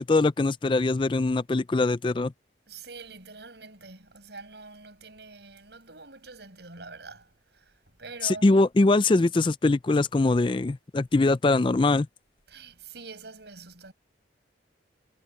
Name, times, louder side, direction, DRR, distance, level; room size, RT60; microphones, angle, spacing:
voice 1, 0.0-2.3 8.2-12.1, left 2 dB, 25° left, 0.4 m, -22 dB
voice 2, 2.7-8.5 12.5-13.9, right 3 dB, 65° right, 5.9 m, -45 dB
head